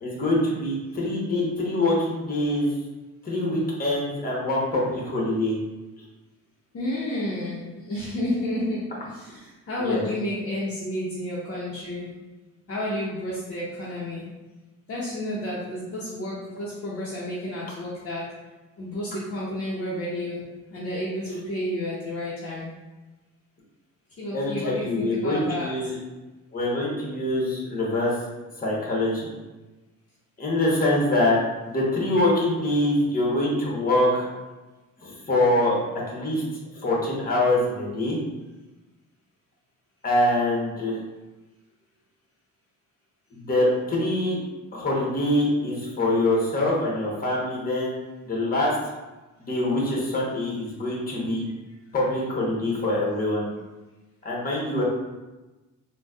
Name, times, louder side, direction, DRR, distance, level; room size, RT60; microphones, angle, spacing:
voice 1, 0.0-2.7 3.2-5.5 9.8-10.0 24.3-26.0 26.5-28.1 28.6-29.3 30.4-31.4 31.7-34.3 35.0-35.8 36.1-36.4 36.7-38.2 40.0-41.0 43.3-44.4 44.7-48.0 48.3-48.8 49.4-51.4 51.9-53.4 54.2-54.8, left 1 dB, 30° left, -4 dB, 1.1 m, -24 dB
voice 2, 6.7-12.1 12.7-14.3 14.9-18.3 18.8-22.7 24.2-25.8, left 1 dB, 50° left, -7 dB, 0.8 m, -31 dB
4.0 x 2.3 x 2.4 m, 1.1 s
cardioid pair, 90°, 30 cm